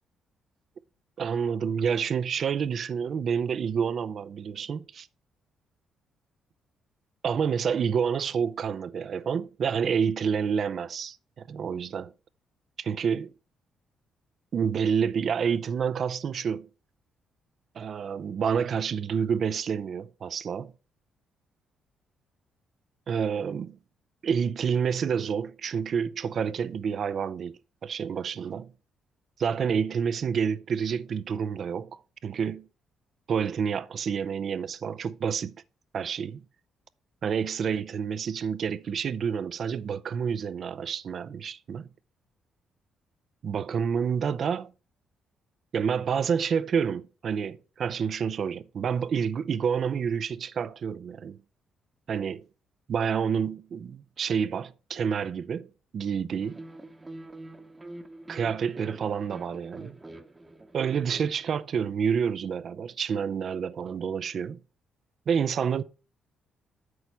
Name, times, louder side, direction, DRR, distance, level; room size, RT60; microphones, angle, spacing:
voice 1, 1.2-5.1 7.2-12.1 12.8-13.3 14.5-16.7 17.8-20.7 23.1-23.8 24.2-28.7 29.4-32.7 33.3-35.5 35.9-36.4 37.2-41.9 43.4-44.7 45.7-51.4 52.1-52.5 52.9-56.6 58.3-60.0 60.7-64.6 65.3-65.8, right 7 dB, 55° right, 0.5 m, -28 dB
sound 1, 56.4-61.6, right 2 dB, 20° right, 0.9 m, -45 dB
8.2 x 6.2 x 4.5 m
cardioid pair, 90°, 0 cm